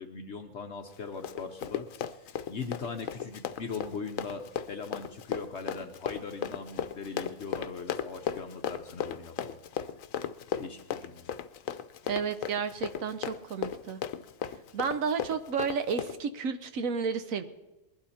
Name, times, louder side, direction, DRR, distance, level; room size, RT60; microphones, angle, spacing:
voice 1, 0.0-9.6 10.6-11.4, left 5 dB, 60° left, 5 dB, 1.1 m, -40 dB
Run, 0.9-16.2, left 8 dB, 80° left, 1.1 m, -36 dB
voice 2, 12.1-14.0 14.7-17.4, right 6 dB, 85° right, 10 dB, 1.4 m, -32 dB
21.0 x 11.5 x 4.3 m, 1.0 s
omnidirectional pair, 1.4 m